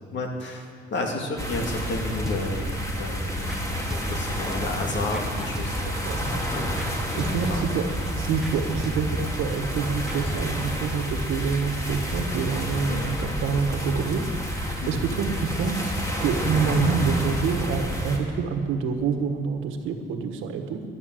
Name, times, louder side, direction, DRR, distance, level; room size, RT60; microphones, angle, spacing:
voice 1, 0.1-6.8 7.1-7.7 8.0-8.2 8.7-8.8 12.9-13.1 14.8-15.2, left 2 dB, 65° left, 2 dB, 2.3 m, -32 dB
sound 1, 1.4-18.2, equal, 15° left, 2.5 m, -29 dB
sound 2, 2.3-2.8 3.5-3.6 3.9-4.6 5.1-6.1 6.8-6.9 7.2-7.7 8.0-8.1 8.4-8.6 8.8-9.4 10.1-10.2, right 1 dB, ahead, 1.3 m, -37 dB
voice 2, 7.2-7.9 8.2-14.2 14.9-15.9 16.2-20.8, right 5 dB, 90° right, 5 dB, 1.3 m, -27 dB
12.0 x 10.5 x 7.7 m, 2.3 s
cardioid pair, 90°, 20 cm